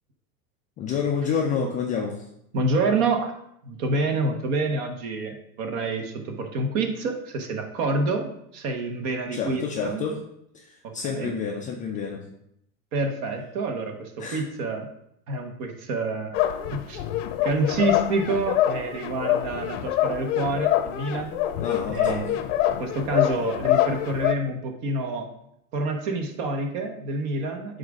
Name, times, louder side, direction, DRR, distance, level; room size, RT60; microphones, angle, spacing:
voice 1, 0.8-2.3 9.3-10.2 10.5-12.3 14.2-14.4 21.6-22.3, left 6 dB, 20° left, 1 dB, 0.3 m, -29 dB
voice 2, 2.5-3.3 3.6-10.1 10.8-11.3 12.9-14.9 15.3-16.4 16.7-17.0 17.4-21.4 21.9-22.4 22.8-25.3 25.7-27.8, right 2 dB, 50° right, 4 dB, 1.2 m, -28 dB
sound 1, 16.3-24.3, left 12 dB, 55° left, 0.7 m, -25 dB
7.8 x 2.6 x 4.9 m, 0.77 s
hypercardioid pair, 100°, 45 cm